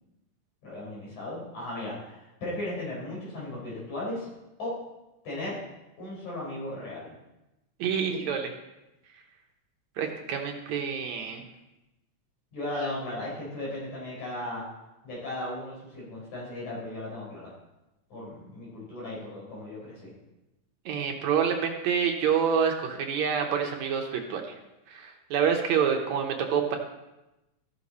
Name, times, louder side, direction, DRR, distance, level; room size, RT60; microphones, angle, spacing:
voice 1, 0.6-4.3 4.6-4.8 5.2-5.5 6.0-7.1 12.5-14.6 15.0-17.5 18.1-20.1, left 1 dB, 70° left, -6 dB, 5.7 m, -36 dB
voice 2, 7.8-8.5 10.0-11.4 20.9-24.6 24.9-26.8, right 7 dB, 70° right, 3 dB, 2.1 m, -27 dB
14.0 x 6.4 x 4.1 m, 0.96 s
omnidirectional pair, 3.6 m